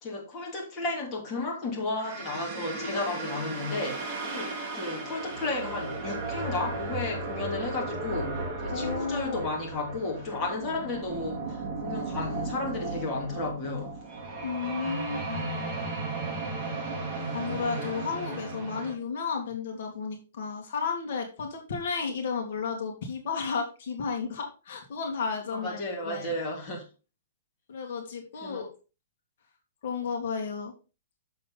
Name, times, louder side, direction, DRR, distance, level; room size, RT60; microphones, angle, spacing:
voice 1, 0.0-13.9 25.5-26.9 28.4-28.6, left 2 dB, 20° left, 2.6 m, -33 dB
sound 1, 2.0-18.9, right 3 dB, 20° right, 2.3 m, -35 dB
voice 2, 8.7-9.5 14.4-15.4 17.3-26.3 27.7-28.7 29.8-30.7, left 5 dB, 55° left, 2.0 m, -33 dB
7.4 x 6.8 x 3.9 m
hypercardioid pair, 165°, 0 cm